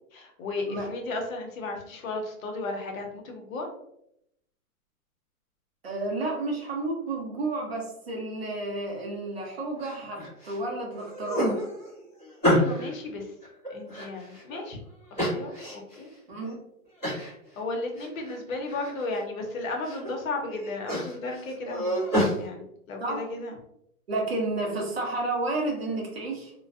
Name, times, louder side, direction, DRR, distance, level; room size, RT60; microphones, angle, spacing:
voice 1, 0.1-3.7 12.5-13.3 13.7-14.8 15.1-16.1 17.6-22.0 22.4-23.6, left 2 dB, 60° left, 2 dB, 0.8 m, -34 dB
voice 2, 5.8-11.6 16.3-16.6 23.0-23.3 24.1-26.5, right 2 dB, 45° right, 0 dB, 0.6 m, -31 dB
sound 1, 9.8-10.6 10.9-12.9 13.4-14.6 15.2-16.0 16.4-16.5 17.0-17.3 17.7-18.4 18.7-19.2 19.6-20.1 20.5-22.4, equal, 5° left, 0.9 m, -29 dB
2.5 x 2.1 x 2.3 m, 0.77 s
hypercardioid pair, 180°, 45 cm